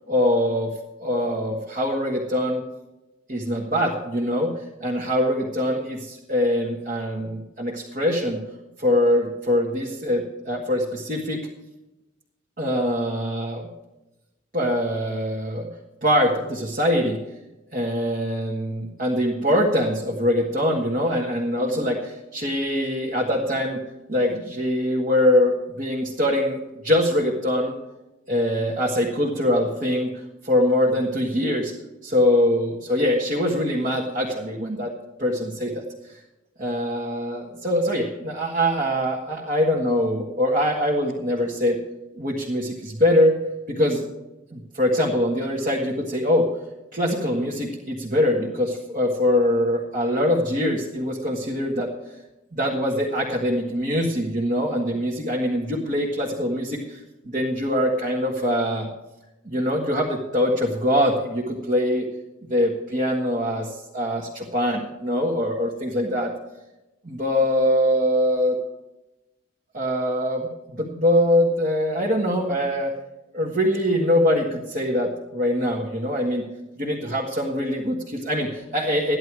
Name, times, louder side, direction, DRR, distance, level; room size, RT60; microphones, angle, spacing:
voice 1, 0.1-0.7 1.0-2.6 3.3-4.5 4.8-8.4 8.8-11.5 12.6-13.7 14.5-15.7 16.0-17.2 17.7-23.8 24.1-26.6 26.8-27.7 28.3-30.1 30.4-31.7 32.0-34.9 35.2-35.8 36.6-41.8 42.1-43.4 43.7-44.1 44.5-46.5 46.9-51.9 52.5-57.0 57.2-58.9 59.4-62.1 62.5-66.3 67.0-68.6 69.7-72.9 73.3-76.4 76.8-79.2, left 1 dB, 45° right, -3 dB, 1.6 m, -23 dB
14.0 x 11.0 x 4.7 m, 1.0 s
head